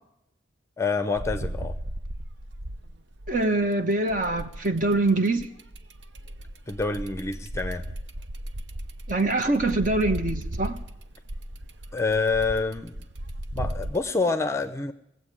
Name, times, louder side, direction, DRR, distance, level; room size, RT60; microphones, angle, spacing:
voice 1, 0.8-1.7 6.7-7.8 11.9-13.0 13.5-14.9, left 4 dB, 15° left, 10 dB, 0.6 m, -27 dB
sound 1, 1.1-3.6 4.1-14.0, right 1 dB, 70° right, 0.8 m, -36 dB
voice 2, 3.3-5.5 9.1-10.8, right 2 dB, 40° right, 7 dB, 1.2 m, -24 dB
18.5 x 8.0 x 9.9 m, 0.81 s
head